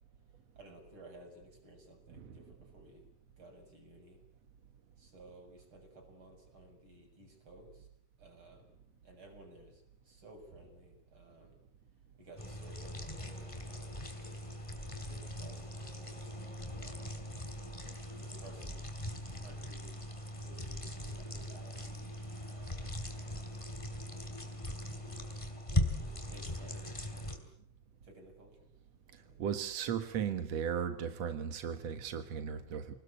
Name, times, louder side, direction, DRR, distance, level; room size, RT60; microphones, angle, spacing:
voice 1, 0.6-3.1 3.4-4.2 5.0-7.9 8.2-11.6 12.2-17.3 18.2-18.8 19.1-20.1 20.4-23.3 24.4-27.5 28.0-28.7 29.2-29.4, right 1 dB, 25° right, 4 dB, 7.6 m, -57 dB
voice 2, 2.1-2.4 29.4-32.9, right 8 dB, 65° right, 9 dB, 1.6 m, -36 dB
sound 1, 12.4-27.4, left 1 dB, 10° left, 2.9 m, -40 dB
29.0 x 20.0 x 8.6 m, 0.75 s
omnidirectional pair, 5.3 m